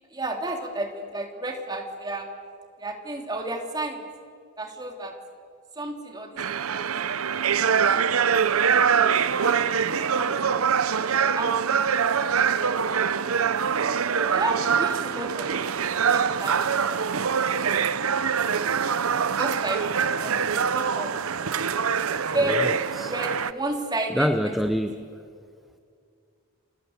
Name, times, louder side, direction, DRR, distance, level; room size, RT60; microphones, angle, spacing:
voice 1, 0.1-2.3 2.8-4.0 4.6-5.1 5.8-6.4 6.7-6.9 8.4-9.0 9.6-10.3 11.2-11.5 11.9-12.6 14.1-15.5 16.0-17.7 19.4-19.8 20.2-21.5 21.9-22.6 23.0-24.3, right 2 dB, 20° right, 3 dB, 3.1 m, -32 dB
sound 1, 6.4-23.5, right 7 dB, 85° right, 0.8 m, -24 dB
voice 2, 22.4-23.1 24.1-25.0, equal, ahead, 7 dB, 0.8 m, -26 dB
30.0 x 25.0 x 8.0 m, 2.3 s
head